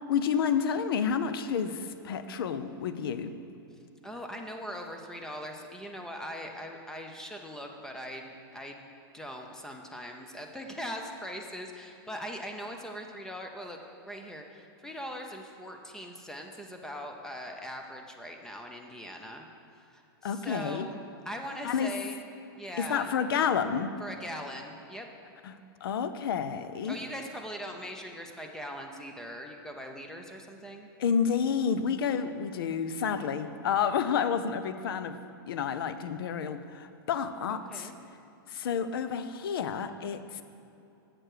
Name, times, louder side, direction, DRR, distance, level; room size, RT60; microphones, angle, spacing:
voice 1, 0.1-3.3 20.2-20.9 21.6-21.9 22.8-23.9 25.4-27.0 31.0-35.2 35.5-37.9 38.5-40.4, left 7 dB, 75° left, 11 dB, 0.5 m, -30 dB
voice 2, 4.0-8.9 9.1-13.8 14.1-19.5 19.8-21.0 21.3-22.2 22.5-23.1 24.0-25.1 26.8-30.9 37.5-38.0, equal, 5° left, 3 dB, 0.5 m, -41 dB
7.6 x 6.5 x 4.8 m, 2.8 s
hypercardioid pair, 140°, 12 cm